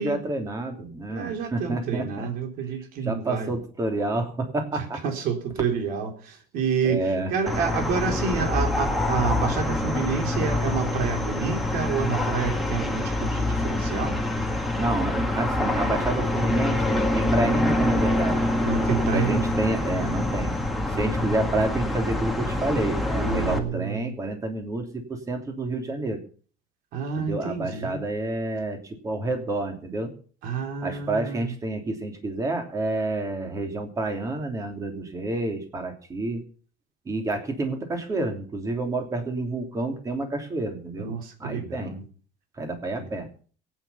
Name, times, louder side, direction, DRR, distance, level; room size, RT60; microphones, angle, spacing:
voice 1, 0.0-2.3 3.0-5.0 6.8-7.3 14.8-18.4 19.1-20.5 20.9-26.2 27.2-30.1 30.8-36.4 37.0-41.1 41.4-42.0 42.6-43.3, right 2 dB, 20° right, 4 dB, 3.0 m, -29 dB
voice 2, 1.1-3.5 4.7-14.2 18.6-19.5 23.1-24.1 26.9-28.0 30.4-31.5 41.0-42.0 43.0-43.1, right 6 dB, 65° right, 5 dB, 3.5 m, -29 dB
sound 1, 7.5-23.6, left 1 dB, ahead, 1.9 m, -25 dB
22.0 x 9.4 x 5.6 m, 0.42 s
cardioid pair, 160°, 16 cm